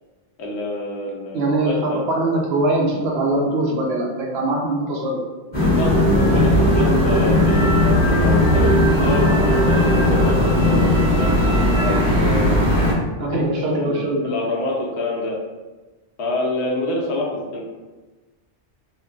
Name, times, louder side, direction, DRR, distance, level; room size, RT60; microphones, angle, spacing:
voice 1, 0.4-1.5 1.9-2.0 5.6-12.6 13.3-15.4 16.2-17.6, left 2 dB, 75° left, -2 dB, 0.9 m, -27 dB
voice 2, 1.3-5.2 13.2-14.3, right 2 dB, 70° right, -1 dB, 0.8 m, -22 dB
sound 1, 5.5-12.9, left 1 dB, 35° left, 0.9 m, -17 dB
3.1 x 2.1 x 2.3 m, 1.2 s
omnidirectional pair, 1.1 m